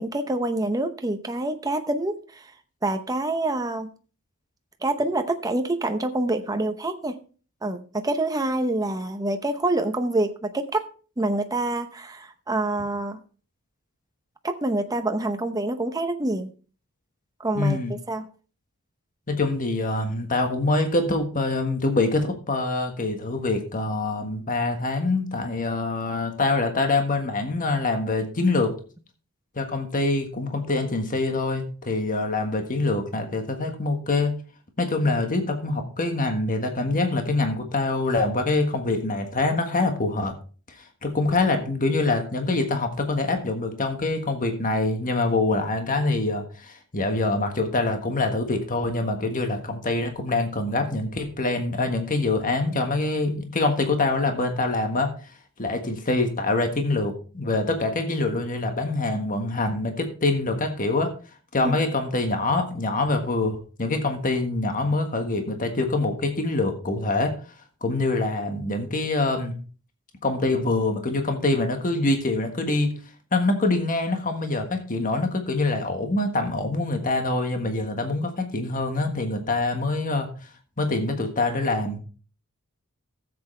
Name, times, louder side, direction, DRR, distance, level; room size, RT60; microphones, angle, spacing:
voice 1, 0.0-2.5 2.8-3.9 4.8-7.1 7.6-10.8 11.2-13.2 14.4-16.5 17.4-17.8 18.1-18.3 61.6-61.8, right 2 dB, 15° right, 7 dB, 0.8 m, -26 dB
voice 2, 17.5-17.9 19.3-28.7 29.5-34.3 34.8-40.3 41.0-55.1 55.6-61.1 61.5-67.3 67.8-69.5 70.2-72.9 73.3-80.3 80.8-82.0, left 2 dB, 40° left, 5 dB, 1.5 m, -25 dB
14.0 x 7.8 x 3.2 m, 0.38 s
head